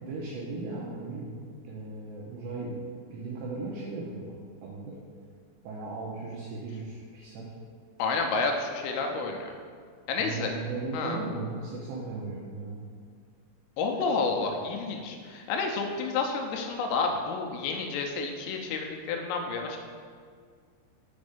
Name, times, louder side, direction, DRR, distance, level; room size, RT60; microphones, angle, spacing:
voice 1, 0.0-1.4 1.6-2.8 3.1-5.0 5.6-7.5 10.2-12.8, right 3 dB, 80° right, -5 dB, 2.5 m, -37 dB
voice 2, 8.0-9.5 10.1-10.5 10.9-11.2 13.8-19.8, left 4 dB, 85° left, 2 dB, 3.3 m, -30 dB
7.1 x 5.3 x 5.0 m, 2.1 s
omnidirectional pair, 6.0 m